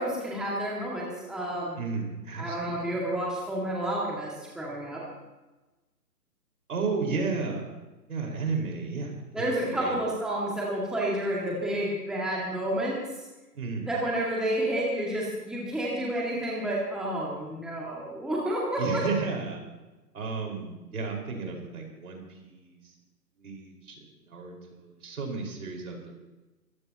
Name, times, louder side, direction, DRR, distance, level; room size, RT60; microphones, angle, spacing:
voice 1, 0.0-1.8 2.4-5.0 9.3-13.0 13.8-19.0, right 1 dB, ahead, -5 dB, 2.0 m, -30 dB
voice 2, 1.8-2.8 6.7-7.7 8.1-9.4 9.7-10.0 13.5-13.9 18.8-19.6 20.1-22.8 23.4-24.0 24.3-26.2, right 4 dB, 60° right, 1 dB, 5.0 m, -33 dB
23.5 x 15.0 x 2.9 m, 1.1 s
hypercardioid pair, 145°, 49 cm